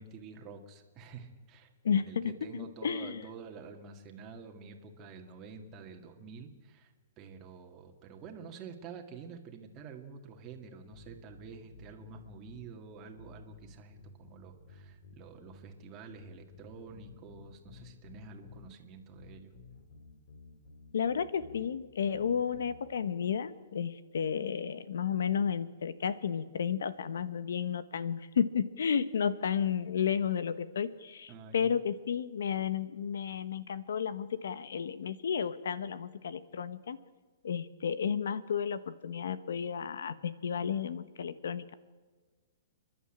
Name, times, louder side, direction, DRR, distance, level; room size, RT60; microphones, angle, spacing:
voice 1, 0.0-19.5 31.3-31.7, right 5 dB, 25° right, 3 dB, 2.0 m, -48 dB
voice 2, 1.8-3.2 20.9-37.0 37.4-41.7, left 7 dB, 85° left, 14 dB, 1.3 m, -32 dB
sound 1, 10.9-12.7 13.2-15.8 16.2-18.7 19.2-21.7 22.2-22.8, left 3 dB, 50° left, 4.3 m, -54 dB
29.0 x 11.0 x 8.9 m, 1.4 s
hypercardioid pair, 160°, 0 cm